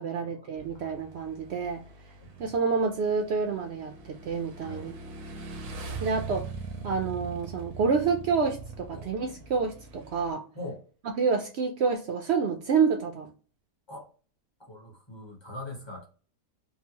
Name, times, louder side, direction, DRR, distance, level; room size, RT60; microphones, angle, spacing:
voice 1, 0.0-1.8 2.4-5.0 6.0-6.5 6.8-10.5 11.2-13.3, right 5 dB, 70° right, 0.6 m, -28 dB
Motorcycle / Engine, 0.6-10.3, right 4 dB, 85° right, 1.2 m, -42 dB
voice 2, 4.6-4.9 8.9-9.0 10.5-10.8 13.9-14.1 14.6-16.0, left 1 dB, 25° left, 0.7 m, -42 dB
3.8 x 2.1 x 2.8 m
omnidirectional pair, 1.6 m